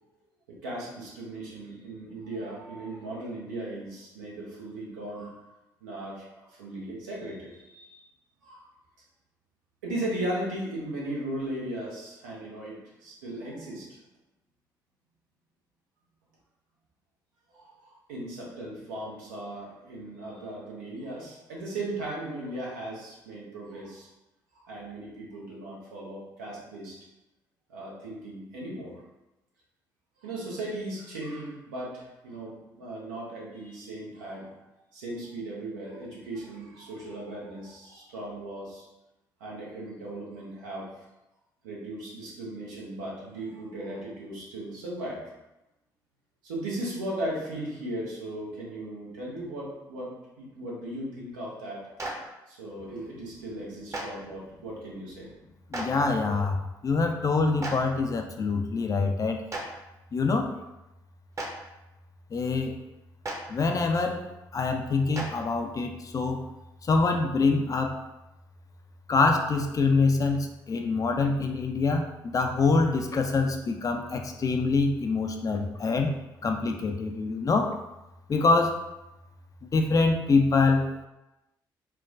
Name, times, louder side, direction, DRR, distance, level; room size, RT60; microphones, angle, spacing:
voice 1, 0.5-5.5 5.8-8.0 8.4-8.7 9.8-14.0 17.5-24.1 24.5-26.9 27.7-29.0 30.2-34.6 34.9-38.8 39.4-40.9 41.6-45.2 46.4-51.9 52.5-55.3, right 1 dB, 75° right, -4 dB, 0.9 m, -37 dB
Clapping, 52.0-52.1 53.9-54.0 55.7-55.8 57.6-57.7 59.5-59.6 61.3-61.5 63.2-63.3 65.1-65.2, right 2 dB, 25° right, 0.9 m, -32 dB
voice 2, 55.7-59.4 60.1-60.5 62.3-62.7 63.5-64.2 64.5-66.4 66.8-67.9 69.1-76.1 76.4-77.8 78.3-78.8 79.6-81.1, left 3 dB, 30° left, 4 dB, 0.4 m, -25 dB
4.4 x 2.2 x 2.5 m, 0.95 s
figure-of-eight pair, 45°, 11 cm